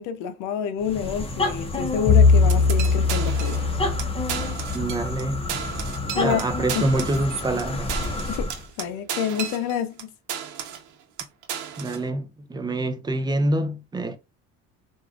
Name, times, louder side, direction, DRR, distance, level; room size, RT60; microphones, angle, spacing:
voice 1, 0.0-3.6 6.1-6.4 6.8-6.9 8.3-8.5 8.8-10.1, left 8 dB, 65° left, 0.7 m, -28 dB
sound 1, 0.8-8.7, left 2 dB, 15° left, 1.3 m, -30 dB
Bowed string instrument, 2.1-6.3, left 4 dB, 40° left, 0.4 m, -21 dB
sound 2, 2.5-3.7 4.0-4.1 4.3-5.2 5.5-10.0 10.3-10.9 11.2-12.0, right 8 dB, 65° right, 1.0 m, -33 dB
voice 2, 4.7-5.4 6.2-8.0 11.8-14.2, right 1 dB, 15° right, 0.6 m, -26 dB
4.7 x 2.7 x 2.4 m
supercardioid pair, 100°, 32 cm